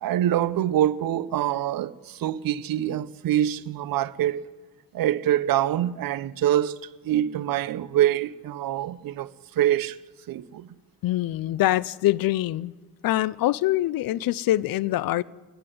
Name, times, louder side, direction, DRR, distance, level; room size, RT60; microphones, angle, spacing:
voice 1, 0.0-4.5 4.9-10.0 10.3-10.7, right 12 dB, 65° right, 0.8 m, -25 dB
voice 2, 11.0-12.7 13.0-15.2, left 15 dB, 70° left, 0.6 m, -24 dB
29.5 x 10.0 x 9.6 m
hypercardioid pair, 50°, 37 cm